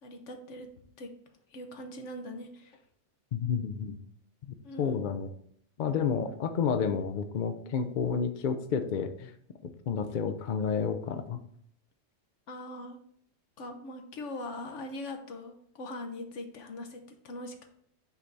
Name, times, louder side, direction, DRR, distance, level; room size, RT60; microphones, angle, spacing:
voice 1, 0.0-0.7 1.0-1.1 1.5-2.8 4.6-5.0 12.5-13.0 13.6-17.7, left 1 dB, 75° left, 5 dB, 1.2 m, -41 dB
voice 2, 3.3-4.0 4.5-5.3 5.8-9.3 9.9-11.4, left 6 dB, 55° left, 8 dB, 0.6 m, -30 dB
8.5 x 3.4 x 4.0 m, 0.66 s
omnidirectional pair, 1.3 m